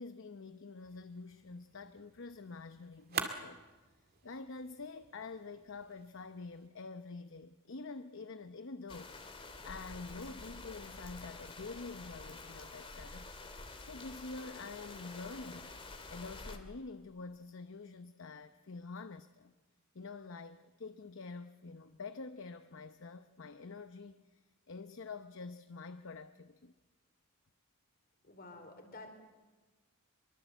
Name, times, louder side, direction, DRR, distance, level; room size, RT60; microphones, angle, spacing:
voice 1, 0.0-3.6 4.2-9.2 9.6-13.3 13.8-15.7 16.1-19.5 19.9-24.4 24.7-26.7, left 3 dB, 60° left, 10 dB, 0.8 m, -47 dB
sound 1, 0.8-6.7, right 6 dB, 45° right, 2.2 m, -46 dB
sound 2, 8.9-16.6, left 3 dB, 25° left, 2.1 m, -48 dB
voice 2, 28.2-29.1, left 2 dB, 45° left, 5 dB, 4.6 m, -50 dB
24.0 x 23.0 x 8.1 m, 1.2 s
head